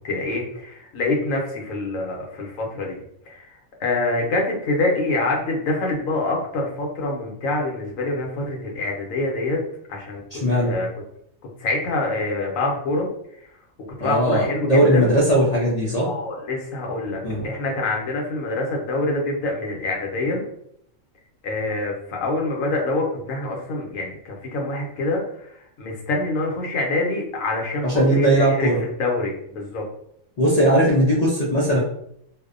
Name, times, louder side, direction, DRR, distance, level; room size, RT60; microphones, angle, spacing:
voice 1, 0.0-3.0 3.3-9.6 9.9-10.9 11.6-13.1 14.0-15.1 16.0-20.4 21.4-28.7 29.0-29.8, left 2 dB, 85° left, -1 dB, 1.1 m, -25 dB
voice 2, 10.3-10.7 14.0-16.1 17.2-17.5 27.8-28.8 30.4-31.8, right 1 dB, 60° left, -5 dB, 0.4 m, -19 dB
2.6 x 2.1 x 2.4 m, 0.71 s
omnidirectional pair, 1.4 m